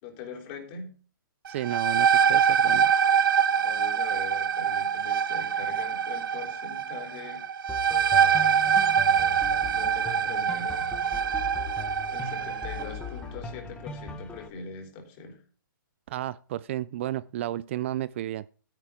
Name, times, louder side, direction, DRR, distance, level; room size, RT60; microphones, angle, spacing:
voice 1, 0.0-0.9 3.6-7.5 9.7-10.8 12.1-15.4, left 5 dB, 30° left, 4.0 m, -42 dB
voice 2, 1.5-2.9 16.1-18.5, right 13 dB, 35° right, 0.4 m, -32 dB
sound 1, 1.5-12.9, right 7 dB, 80° right, 0.9 m, -24 dB
sound 2, 7.7-14.5, left 4 dB, 10° left, 1.3 m, -39 dB
13.0 x 10.5 x 3.7 m
hypercardioid pair, 160°, 11 cm